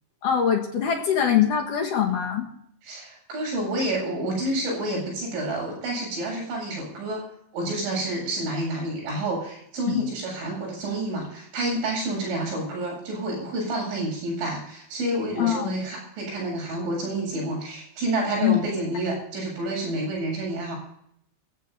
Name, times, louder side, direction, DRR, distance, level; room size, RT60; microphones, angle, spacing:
voice 1, 0.2-2.4 9.9-10.1 15.4-15.7 18.4-18.6, left 9 dB, 60° left, 1 dB, 2.4 m, -23 dB
voice 2, 2.8-7.2 7.5-20.8, right 1 dB, 80° right, -1 dB, 10.5 m, -29 dB
25.5 x 15.0 x 2.8 m, 0.71 s
omnidirectional pair, 5.4 m